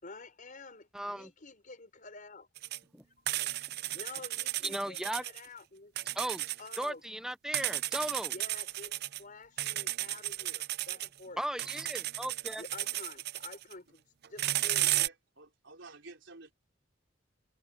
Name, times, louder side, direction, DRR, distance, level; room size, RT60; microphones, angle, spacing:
voice 1, 0.0-2.5 3.9-5.9 6.6-7.0 8.3-11.4 12.6-14.0 14.3-14.9, left 3 dB, 45° left, 5.2 m, -49 dB
voice 2, 0.9-1.3 2.9-3.0 4.6-5.2 6.1-6.4 6.8-8.3 11.4-12.6, right 1 dB, 5° right, 0.6 m, -36 dB
sound 1, 2.6-2.8 3.3-5.5 6.0-6.9 7.5-9.2 9.6-11.1 11.6-13.7 14.2-15.1, right 15 dB, 55° right, 0.5 m, -34 dB
voice 3, 14.8-16.5, right 3 dB, 70° right, 4.0 m, -51 dB
head